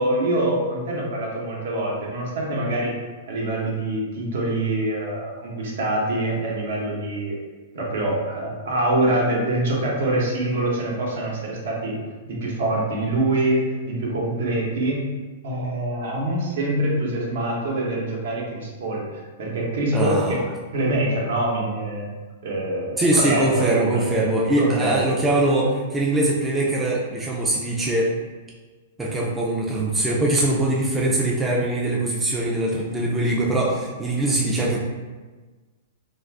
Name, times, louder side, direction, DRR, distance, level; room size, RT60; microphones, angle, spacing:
voice 1, 0.0-2.9 3.3-7.4 7.7-12.0 12.2-15.1 15.4-20.4 20.7-22.1 22.4-24.0 24.6-25.0, right 1 dB, 70° right, -3 dB, 0.9 m, -25 dB
voice 2, 19.9-20.4 23.0-28.1 29.0-34.8, right 1 dB, 10° right, -4 dB, 0.3 m, -22 dB
2.4 x 2.4 x 3.3 m, 1.3 s
hypercardioid pair, 155°, 0 cm